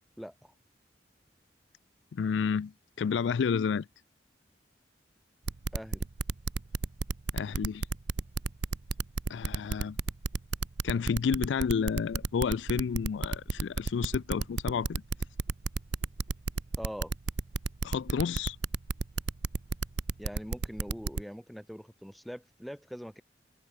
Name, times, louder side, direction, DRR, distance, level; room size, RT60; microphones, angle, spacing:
voice 1, 0.2-0.5 5.7-6.1 16.8-17.1 20.2-23.2, equal, ahead, 2.4 m, -43 dB
voice 2, 2.1-2.7 3.0-3.9 7.3-7.9 9.3-10.0 10.8-15.0 17.8-18.6, left 6 dB, 90° left, 0.4 m, -30 dB
sound 1, 5.5-21.2, right 3 dB, 75° right, 0.8 m, -31 dB
head